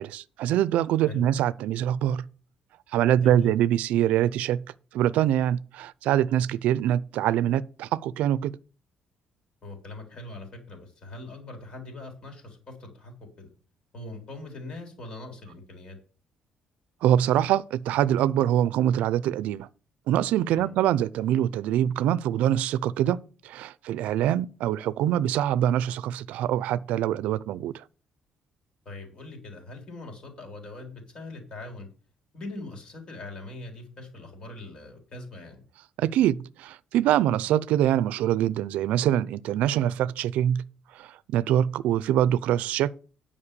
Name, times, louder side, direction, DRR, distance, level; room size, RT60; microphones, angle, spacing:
voice 1, 0.0-2.2 2.9-4.6 4.9-8.6 17.0-19.7 20.1-27.8 36.0-40.6 40.9-42.9, right 11 dB, 80° right, 0.5 m, -24 dB
voice 2, 3.2-3.5 9.6-13.5 13.9-16.0 20.5-20.7 28.9-31.9 32.3-35.7, left 2 dB, 35° left, 3.6 m, -41 dB
9.8 x 5.4 x 6.8 m
cardioid pair, 170°, 2 cm